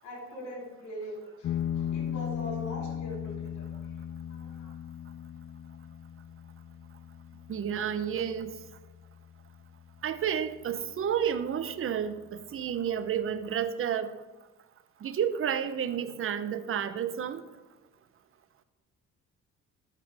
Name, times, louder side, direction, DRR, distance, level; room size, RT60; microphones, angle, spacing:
voice 1, 0.0-4.0 4.3-4.7, left 1 dB, 75° left, -4 dB, 3.9 m, -42 dB
Clean E str pick, 1.4-10.5, left 9 dB, 45° left, 0.4 m, -38 dB
voice 2, 7.5-8.5 10.0-14.1 15.0-17.4, right 8 dB, 45° right, 12 dB, 0.7 m, -31 dB
12.0 x 8.3 x 3.4 m, 1.1 s
cardioid pair, 90°, 30 cm